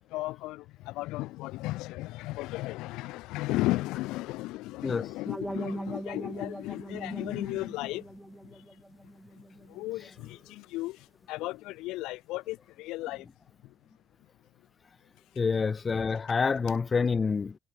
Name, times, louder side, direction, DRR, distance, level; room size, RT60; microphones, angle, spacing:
voice 1, 0.0-8.1 8.5-8.6 9.6-13.3 13.6-13.7, left 19 dB, 75° left, 0.9 m, -35 dB
sound 1, 5.3-10.2, right 1 dB, 10° right, 2.5 m, -40 dB
voice 2, 15.4-17.6, left 5 dB, 40° left, 1.2 m, -27 dB
hypercardioid pair, 50°, 0 cm